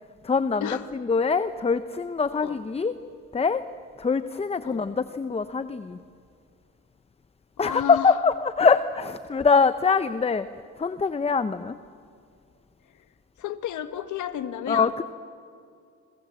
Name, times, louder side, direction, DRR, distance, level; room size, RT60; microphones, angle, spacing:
voice 1, 0.2-3.0 3.3-3.6 4.0-6.0 7.6-10.5 10.8-11.8 14.7-15.0, left 5 dB, 20° left, 12 dB, 0.7 m, -23 dB
voice 2, 7.6-8.1 12.9-13.0 13.4-14.9, left 10 dB, 75° left, 10 dB, 1.5 m, -32 dB
27.0 x 22.0 x 7.7 m, 2.4 s
cardioid pair, 90°, 30 cm